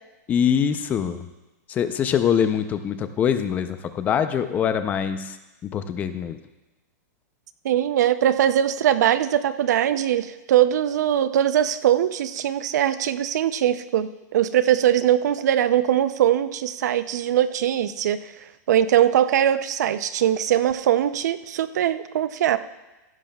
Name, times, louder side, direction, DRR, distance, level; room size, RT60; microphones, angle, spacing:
voice 1, 0.3-1.2 1.7-5.4 5.6-6.4, left 8 dB, 15° left, 10 dB, 0.5 m, -23 dB
voice 2, 7.6-18.3 18.7-22.6, right 11 dB, 70° right, 13 dB, 0.5 m, -21 dB
15.5 x 11.0 x 2.3 m, 1.1 s
supercardioid pair, 165°, 10 cm